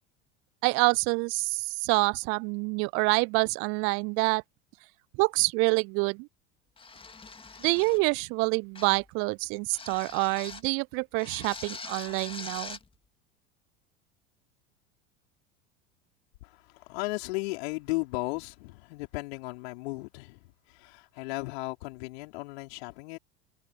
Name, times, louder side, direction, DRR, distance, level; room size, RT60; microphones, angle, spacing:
voice 1, 0.6-4.4 5.2-6.3 7.6-12.8, right 31 dB, 40° right, 0.4 m, -27 dB
sound 1, 6.8-8.1 8.7-9.1 9.7-10.7 11.2-12.9, left 4 dB, 15° left, 2.3 m, -43 dB
voice 2, 16.4-23.2, left 24 dB, 60° left, 4.3 m, -36 dB
figure-of-eight pair, 75°, 36 cm